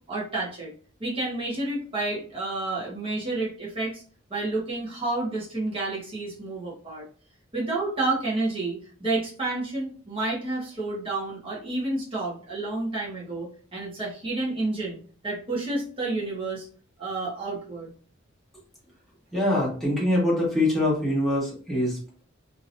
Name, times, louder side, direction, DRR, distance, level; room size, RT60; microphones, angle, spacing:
voice 1, 0.1-0.7 1.0-4.0 4.3-7.0 7.5-16.6 17.0-17.9, right 2 dB, 30° right, -5 dB, 1.3 m, -30 dB
voice 2, 19.3-22.2, left 1 dB, ahead, -6 dB, 1.4 m, -24 dB
2.9 x 2.8 x 2.6 m, 0.42 s
head